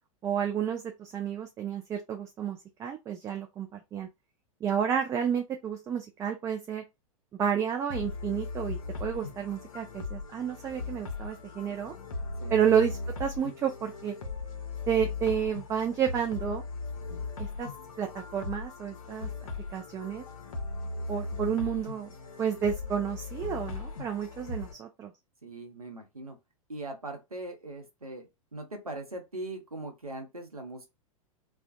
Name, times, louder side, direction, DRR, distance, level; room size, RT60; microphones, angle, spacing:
voice 1, 0.2-4.1 4.6-6.8 7.3-11.9 12.5-14.1 14.9-16.6 17.4-17.7 18.0-19.3 19.7-20.2 21.1-22.1 22.4-25.1, right 8 dB, 15° right, 0.3 m, -30 dB
sound 1, 7.9-24.7, left 3 dB, 70° left, 0.6 m, -38 dB
voice 2, 25.4-26.4 26.7-30.9, right 2 dB, 90° right, 0.7 m, -40 dB
2.4 x 2.1 x 2.5 m
figure-of-eight pair, 95°, 18 cm